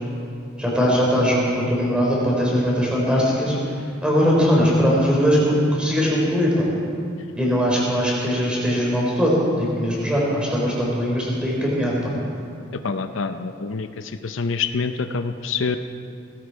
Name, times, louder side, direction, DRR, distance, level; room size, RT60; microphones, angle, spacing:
voice 1, 0.6-3.5 4.0-6.7 7.4-12.1, equal, 5° right, -5 dB, 4.0 m, -20 dB
voice 2, 12.7-15.8, left 5 dB, 75° left, 8 dB, 0.6 m, -26 dB
18.0 x 16.5 x 4.7 m, 2.5 s
head